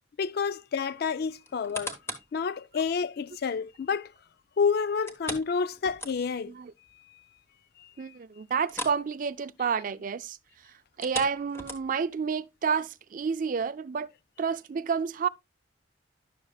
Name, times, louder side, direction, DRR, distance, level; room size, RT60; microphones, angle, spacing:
voice 1, 0.2-1.9 2.3-4.1 4.6-6.5, left 5 dB, 50° left, 0.4 m, -29 dB
sound 1, 1.4-2.4 2.9-3.0 5.1-6.5 6.9-7.0 7.4-7.5 8.6-9.1 9.3-9.6 10.9-12.1 12.7-12.8, left 1 dB, 15° left, 1.1 m, -38 dB
voice 2, 8.0-10.4 11.0-14.1 14.4-15.3, right 6 dB, 45° right, 0.4 m, -30 dB
10.5 x 6.4 x 2.3 m
head